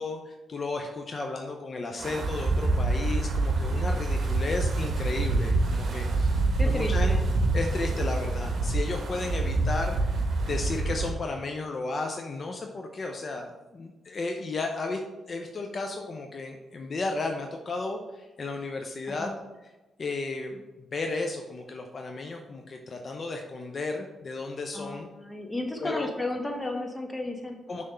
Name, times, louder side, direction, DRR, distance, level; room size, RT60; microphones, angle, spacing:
voice 1, 0.0-6.4 6.6-7.2 7.5-15.0 15.3-19.3 20.0-25.1 25.8-26.1 27.7-27.8, left 3 dB, 50° left, 3 dB, 0.7 m, -34 dB
Wind, 2.0-11.2, right 2 dB, 60° right, 1.0 m, -26 dB
voice 2, 5.4-5.9 6.6-7.3 19.1-19.4 24.7-27.6, left 2 dB, 15° left, 3 dB, 1.4 m, -34 dB
6.6 x 3.6 x 5.5 m, 1.1 s
supercardioid pair, 50°, 0 cm